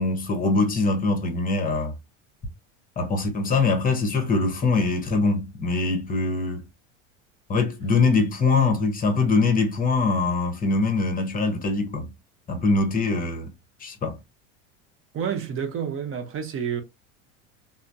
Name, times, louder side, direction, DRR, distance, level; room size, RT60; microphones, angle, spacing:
voice 1, 0.0-1.9 3.0-6.6 7.5-12.1 12.5-13.5 13.8-14.2, left 3 dB, 20° left, 0.8 m, -23 dB
voice 2, 15.1-16.8, right 7 dB, 35° right, 0.9 m, -29 dB
3.2 x 2.0 x 2.5 m
supercardioid pair, 100°, 39 cm